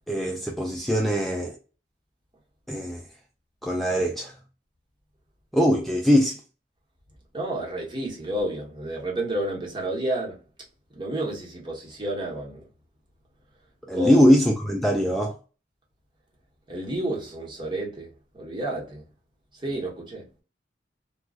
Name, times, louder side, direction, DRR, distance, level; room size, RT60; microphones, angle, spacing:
voice 1, 0.1-1.6 2.7-3.1 3.6-4.3 5.5-6.4 13.9-15.3, equal, ahead, 0.3 m, -21 dB
voice 2, 7.3-10.4 10.9-12.7 13.9-14.2 16.7-18.1 18.3-19.0 19.6-20.2, right 1 dB, 25° right, 1.1 m, -30 dB
3.7 x 2.3 x 2.4 m
head